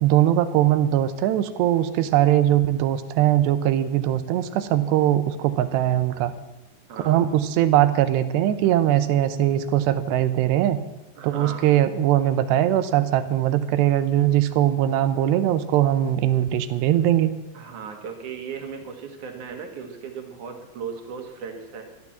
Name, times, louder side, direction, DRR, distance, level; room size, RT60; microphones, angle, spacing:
voice 1, 0.0-6.3 7.1-10.8 11.2-17.3, right 12 dB, 90° right, 12 dB, 3.0 m, -21 dB
voice 2, 6.9-7.3 11.2-11.8 17.5-21.8, right 6 dB, 60° right, 4 dB, 2.4 m, -36 dB
13.0 x 12.0 x 7.2 m, 1.0 s
omnidirectional pair, 4.8 m